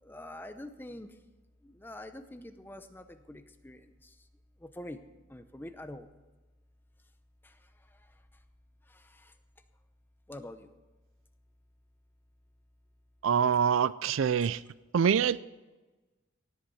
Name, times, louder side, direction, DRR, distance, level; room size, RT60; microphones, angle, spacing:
voice 1, 0.0-1.2 1.6-4.2 4.6-5.0 5.3-6.1 7.4-8.1 8.9-9.3 10.3-10.7 14.4-14.5, left 1 dB, 10° left, 9 dB, 0.7 m, -46 dB
voice 2, 13.2-14.6 14.9-15.4, right 7 dB, 75° right, 19 dB, 0.4 m, -25 dB
17.5 x 8.2 x 5.7 m, 1.2 s
head